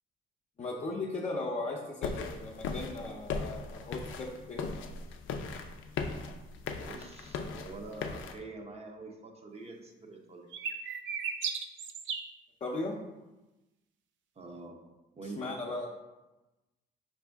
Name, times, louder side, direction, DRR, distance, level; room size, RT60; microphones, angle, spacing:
voice 1, 0.6-4.7 12.6-13.0 15.2-15.9, left 2 dB, 35° left, -4 dB, 0.6 m, -37 dB
sound 1, 2.0-8.4, left 5 dB, 75° left, 0.4 m, -38 dB
voice 2, 6.7-10.5 14.4-14.9 15.2-15.6, right 3 dB, 30° right, 2 dB, 0.7 m, -46 dB
sound 2, 10.5-12.3, right 6 dB, 70° right, 0.4 m, -35 dB
4.8 x 2.6 x 3.4 m, 1.1 s
cardioid pair, 90°, 20 cm